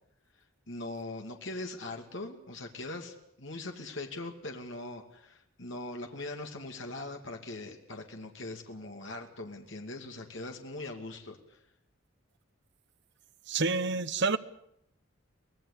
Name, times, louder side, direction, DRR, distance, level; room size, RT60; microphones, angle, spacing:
voice 1, 0.7-11.6, left 2 dB, 60° left, 2.5 m, -41 dB
voice 2, 13.5-14.4, right 4 dB, 55° right, 1.0 m, -28 dB
24.5 x 18.5 x 8.4 m
head